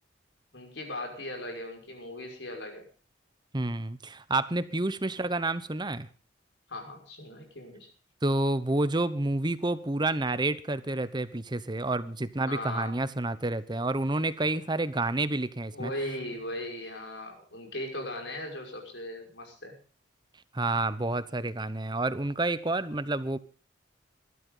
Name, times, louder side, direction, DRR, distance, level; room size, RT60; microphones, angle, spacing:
voice 1, 0.5-2.9 6.7-7.9 12.5-12.9 15.7-19.8, left 1 dB, 65° left, 3 dB, 5.8 m, -38 dB
voice 2, 3.5-6.1 8.2-15.9 20.5-23.4, right 2 dB, 25° right, 14 dB, 0.9 m, -29 dB
21.0 x 12.5 x 3.9 m, 0.37 s
head